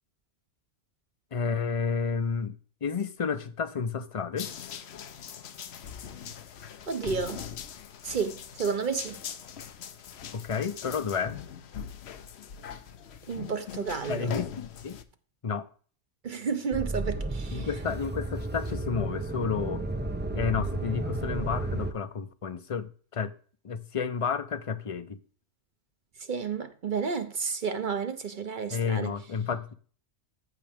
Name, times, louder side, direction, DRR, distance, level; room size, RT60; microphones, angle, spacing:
voice 1, 1.3-4.5 10.3-11.4 14.1-15.0 15.4-15.7 17.5-19.8 20.3-23.3 23.6-25.2 28.7-29.7, left 6 dB, 35° left, 0.6 m, -31 dB
sound 1, 4.4-15.0, left 8 dB, 70° left, 1.0 m, -41 dB
voice 2, 6.9-7.4 8.0-9.2 13.3-14.3 16.2-17.7 26.2-29.1, right 5 dB, 50° right, 0.9 m, -31 dB
sound 2, 16.7-21.9, right 2 dB, 15° right, 0.4 m, -33 dB
14.0 x 6.1 x 3.5 m
omnidirectional pair, 1.2 m